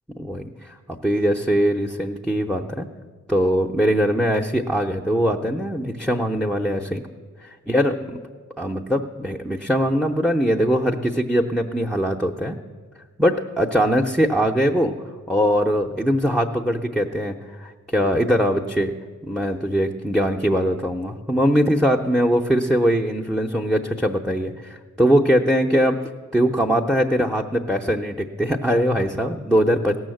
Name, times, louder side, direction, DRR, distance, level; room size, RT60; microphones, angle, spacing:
voice 1, 0.1-2.9 3.3-7.0 7.4-8.2 8.6-12.6 13.2-14.9 15.3-18.9 19.2-26.0 26.3-30.0, equal, ahead, 1 dB, 0.6 m, -21 dB
16.5 x 6.4 x 7.7 m, 1.5 s
cardioid pair, 65°, 31 cm